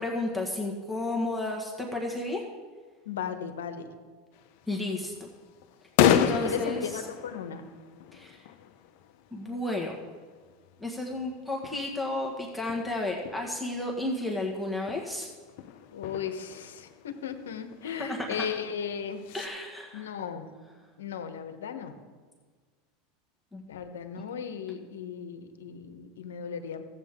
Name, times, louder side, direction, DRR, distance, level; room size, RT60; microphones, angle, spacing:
voice 1, 0.0-2.4 4.7-5.3 6.1-6.8 8.1-8.4 9.3-10.0 10.8-15.3 17.9-18.4 19.3-20.1 23.5-23.7, left 2 dB, ahead, -2 dB, 1.6 m, -32 dB
voice 2, 3.0-3.9 6.0-7.7 15.9-19.2 19.9-20.5 21.0-22.0 23.7-26.8, left 7 dB, 85° left, 7 dB, 1.0 m, -36 dB
sound 1, 4.3-19.5, left 10 dB, 65° left, 0.7 m, -34 dB
14.5 x 8.4 x 3.7 m, 1.5 s
hypercardioid pair, 100°, 0 cm